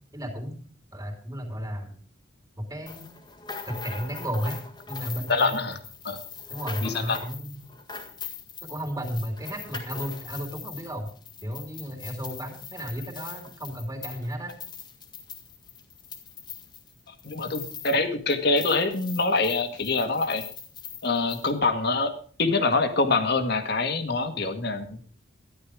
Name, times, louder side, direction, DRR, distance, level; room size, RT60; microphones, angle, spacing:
voice 1, 0.1-0.6 0.9-1.9 2.6-3.1 3.6-4.6 4.9-5.6 6.5-7.6 8.6-11.1 11.4-14.5, equal, 15° right, 3 dB, 3.3 m, -33 dB
sound 1, 2.9-18.0 18.3-21.5, left 6 dB, 20° left, 1.8 m, -41 dB
voice 2, 5.3-5.8 6.0-6.2 6.8-7.2 17.2-20.4 21.0-22.1 22.4-25.0, left 3 dB, 55° left, 7 dB, 1.9 m, -25 dB
13.5 x 11.0 x 5.0 m, 0.43 s
head